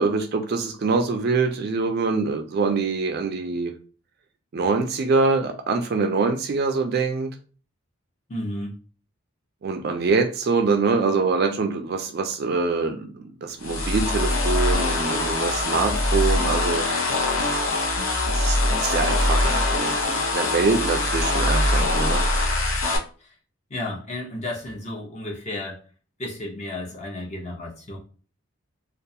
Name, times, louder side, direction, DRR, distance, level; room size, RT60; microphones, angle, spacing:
voice 1, 0.0-3.7 4.5-7.3 9.6-16.9 18.3-22.2, right 4 dB, 45° right, 6 dB, 0.3 m, -24 dB
voice 2, 8.3-8.7 23.7-25.8 26.2-28.0, left 1 dB, 30° left, -2 dB, 0.6 m, -32 dB
sound 1, 13.6-23.0, left 2 dB, 75° left, 0.7 m, -23 dB
2.3 x 2.3 x 2.7 m, 0.39 s
head